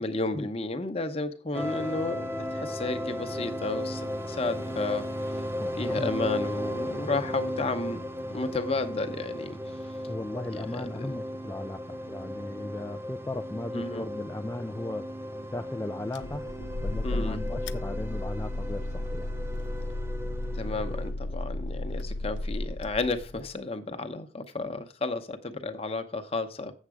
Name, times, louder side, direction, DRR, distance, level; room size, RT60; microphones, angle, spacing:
voice 1, 0.0-5.0 5.7-8.0 8.3-9.6 10.5-11.2 13.7-14.1 17.0-17.4 20.5-26.7, left 3 dB, 30° left, 9 dB, 0.9 m, -32 dB
sound 1, 1.5-21.1, equal, 15° right, 0.7 m, -36 dB
voice 2, 5.6-6.1 10.1-15.1 15.5-16.5 16.8-19.3, left 2 dB, 15° left, 6 dB, 0.3 m, -36 dB
sound 2, 16.1-23.5, left 2 dB, 85° left, 0.6 m, -34 dB
7.9 x 7.3 x 4.9 m, 0.38 s
head